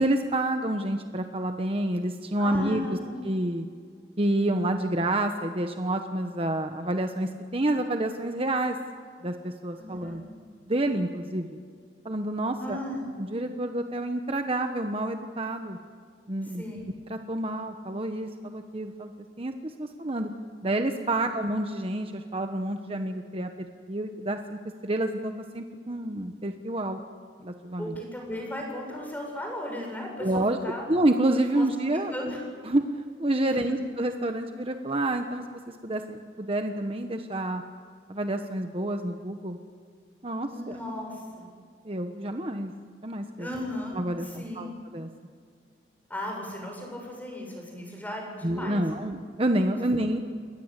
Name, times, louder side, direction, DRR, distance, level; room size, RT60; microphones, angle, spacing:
voice 1, 0.0-3.0 3.2-3.6 4.2-8.8 9.2-10.2 10.6-11.6 12.0-12.8 13.2-15.8 16.3-16.6 17.1-19.1 19.4-20.3 20.6-27.0 27.4-27.9 30.2-30.6 30.9-32.4 32.7-32.8 33.2-37.6 38.1-39.6 40.2-40.8 41.8-42.7 43.0-43.5 43.9-44.7 44.9-45.1 48.4-50.2, right 1 dB, 30° right, 6 dB, 1.2 m, -28 dB
voice 2, 2.4-3.2 9.8-10.2 12.5-13.1 16.4-16.8 21.1-21.3 27.8-30.9 31.6-31.7 31.9-32.4 33.5-33.8 40.4-41.5 43.4-44.7 46.1-48.8, left 1 dB, 10° left, 1 dB, 7.4 m, -36 dB
29.5 x 22.5 x 8.3 m, 2.2 s
head